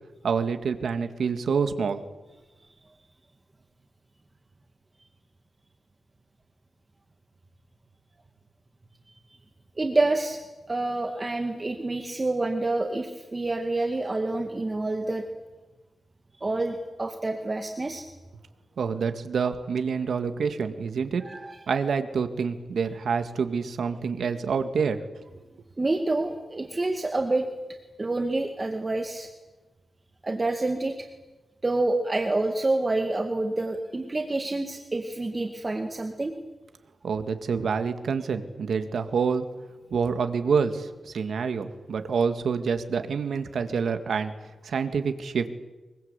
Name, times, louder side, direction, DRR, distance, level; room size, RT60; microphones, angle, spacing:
voice 1, 0.2-2.1 18.8-21.2 21.7-25.0 25.4-25.5 37.0-39.5 39.9-44.3 44.6-45.5, right 5 dB, 75° right, 8 dB, 2.1 m, -27 dB
voice 2, 9.8-10.4 10.7-15.2 16.3-18.1 21.2-21.6 25.8-27.5 28.0-29.3 30.2-31.1 31.6-36.3, right 2 dB, 25° right, 4 dB, 2.0 m, -27 dB
24.5 x 22.5 x 8.3 m, 1.1 s
wide cardioid pair, 110°, 0 cm